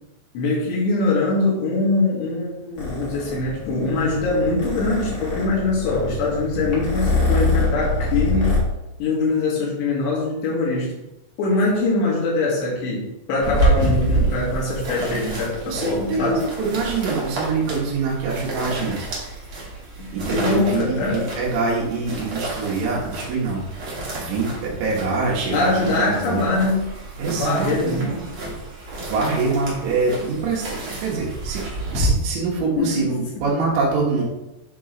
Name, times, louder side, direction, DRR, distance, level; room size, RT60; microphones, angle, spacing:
voice 1, 0.3-8.6 9.0-10.9 11.4-13.0 13.3-16.4 20.0-21.3 25.5-26.9 27.3-28.1 32.8-33.1, left 3 dB, 80° left, -5 dB, 3.9 m, -22 dB
Purr, 2.8-8.6, left 3 dB, 65° left, 1.2 m, -25 dB
sound 1, 13.4-32.1, right 2 dB, 60° right, 1.4 m, -29 dB
voice 2, 15.7-19.1 20.1-26.6 27.2-28.5 29.0-31.7 31.9-34.2, right 4 dB, 80° right, -5 dB, 3.5 m, -25 dB
9.0 x 3.1 x 3.8 m, 0.94 s
omnidirectional pair, 5.0 m